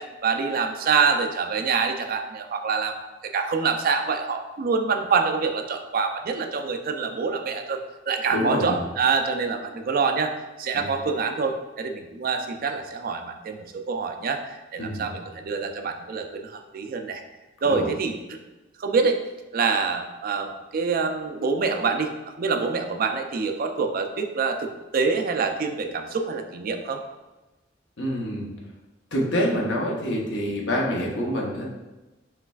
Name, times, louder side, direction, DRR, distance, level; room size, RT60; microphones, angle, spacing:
voice 1, 0.0-3.0 3.2-7.8 8.1-17.2 17.6-18.4 18.8-19.2 19.5-27.0, right 5 dB, 50° right, 6 dB, 0.4 m, -26 dB
voice 2, 8.3-8.8 10.7-10.9 14.8-15.1 17.6-17.9 28.0-28.5 29.1-31.7, equal, 70° left, -2 dB, 0.9 m, -26 dB
5.6 x 3.2 x 2.3 m, 1.1 s
head